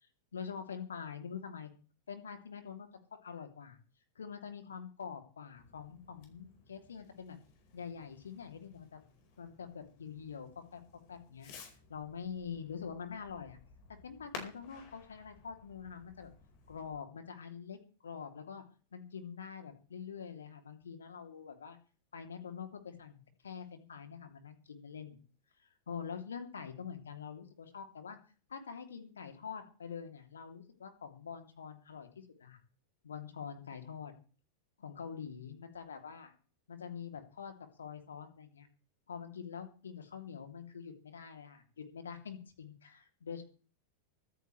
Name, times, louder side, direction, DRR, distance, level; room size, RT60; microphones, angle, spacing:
voice 1, 0.3-1.7 2.1-2.9 3.2-3.8 4.1-7.4 7.7-9.0 9.4-11.5 11.9-13.6 14.0-16.3 16.7-18.6 18.9-21.8 22.1-25.2 25.9-28.2 28.5-32.6 33.0-34.1 34.8-36.3 36.7-38.7 39.1-43.4, left 7 dB, 70° left, 6 dB, 2.8 m, -45 dB
Fireworks, 5.5-16.9, left 5 dB, 45° left, 4.6 m, -55 dB
24.0 x 9.5 x 3.2 m, 0.39 s
figure-of-eight pair, 90°, 0 cm